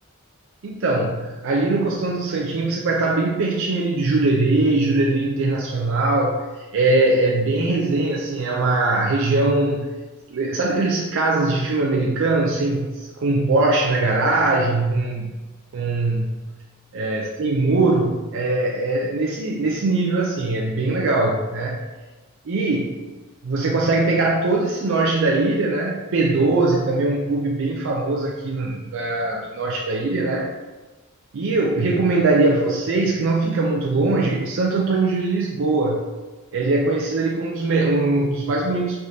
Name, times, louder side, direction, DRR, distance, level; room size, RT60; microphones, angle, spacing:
voice 1, 0.6-9.9 10.3-15.4 15.7-16.4 16.9-21.8 22.5-23.0 23.4-30.5 31.3-36.0 36.5-39.0, right 2 dB, 60° right, -1 dB, 0.4 m, -21 dB
5.3 x 3.2 x 2.7 m, 1.2 s
head